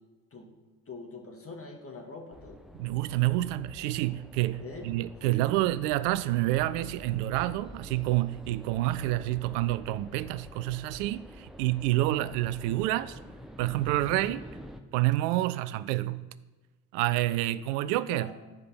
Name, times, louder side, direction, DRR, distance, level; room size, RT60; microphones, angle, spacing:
voice 1, 0.9-2.6 4.6-4.9 5.3-5.5 18.1-18.3, left 3 dB, 25° left, 2.3 m, -43 dB
sound 1, 2.3-14.8, equal, ahead, 0.9 m, -47 dB
voice 2, 2.8-13.2 13.6-14.5 14.9-16.3 16.9-18.3, right 16 dB, 70° right, 0.6 m, -28 dB
13.5 x 5.1 x 5.9 m
figure-of-eight pair, 50°, 50 cm